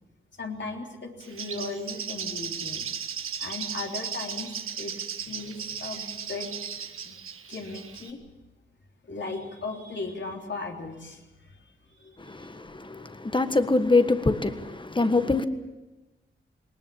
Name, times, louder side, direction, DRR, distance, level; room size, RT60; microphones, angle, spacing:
voice 1, 0.4-2.9 3.4-6.5 7.0-7.2 7.5-8.2 9.0-13.6, left 3 dB, 60° left, 3.6 m, -38 dB
Bird, 1.2-8.1, right 7 dB, 85° right, 1.5 m, -36 dB
voice 2, 12.2-15.5, left 3 dB, 25° left, 1.5 m, -24 dB
20.0 x 19.0 x 8.8 m
cardioid pair, 70°, 21 cm